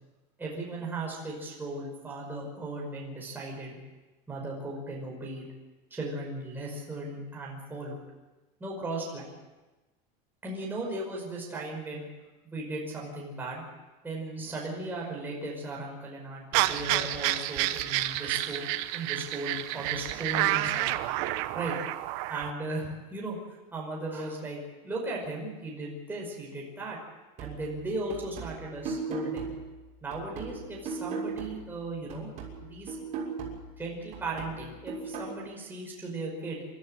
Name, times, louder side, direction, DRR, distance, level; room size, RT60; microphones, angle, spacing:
voice 1, 0.4-3.8 4.3-5.5 5.9-8.0 8.6-9.3 10.4-12.1 12.4-13.6 14.0-20.9 21.5-21.8 22.3-23.4 23.7-27.0 27.4-29.5 30.0-32.3 32.6-33.0 33.8-36.6, right 2 dB, 10° right, -3 dB, 5.4 m, -37 dB
sound 1, 16.5-22.5, right 15 dB, 60° right, 1.2 m, -29 dB
sound 2, 27.4-31.8 32.1-35.4, right 4 dB, 40° right, 6.6 m, -38 dB
28.0 x 13.5 x 8.0 m, 1.1 s
supercardioid pair, 155°, 18 cm